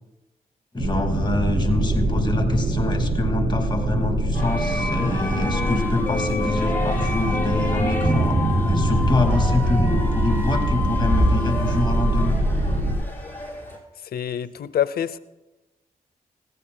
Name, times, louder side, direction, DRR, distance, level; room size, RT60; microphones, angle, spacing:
voice 1, 0.7-12.4, left 2 dB, 30° left, 4 dB, 2.1 m, -26 dB
sound 1, 0.8-12.9, right 1 dB, 75° right, 4.8 m, -23 dB
sound 2, 4.3-13.8, left 2 dB, 15° left, 5.6 m, -30 dB
sound 3, 8.0-11.4 11.9-12.0, right 1 dB, ahead, 2.2 m, -25 dB
voice 2, 14.0-15.2, left 9 dB, 80° left, 14 dB, 0.6 m, -26 dB
20.5 x 16.0 x 2.2 m, 1.1 s
cardioid pair, 55°, 16 cm